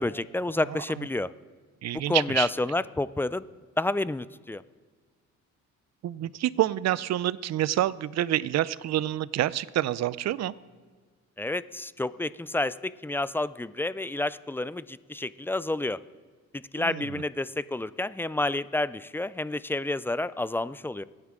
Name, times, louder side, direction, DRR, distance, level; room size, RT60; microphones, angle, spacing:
voice 1, 0.0-1.3 1.9-3.4 3.8-4.6 11.4-16.0 16.5-21.0, left 2 dB, 10° left, 17 dB, 0.3 m, -29 dB
voice 2, 0.7-1.1 1.8-2.5 6.0-10.5 16.8-17.2, right 13 dB, 60° right, 19 dB, 0.5 m, -28 dB
24.5 x 9.8 x 3.7 m, 1.5 s
cardioid pair, 90°, 30 cm